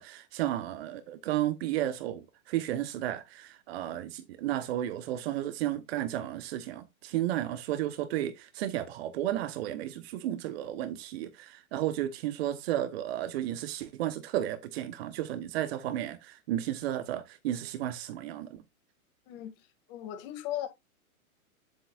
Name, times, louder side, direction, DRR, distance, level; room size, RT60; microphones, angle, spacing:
voice 1, 0.0-18.6, right 12 dB, 45° right, 0.9 m, -33 dB
voice 2, 19.3-20.7, left 12 dB, 40° left, 2.0 m, -38 dB
9.0 x 8.0 x 2.4 m
hypercardioid pair, 130°, 44 cm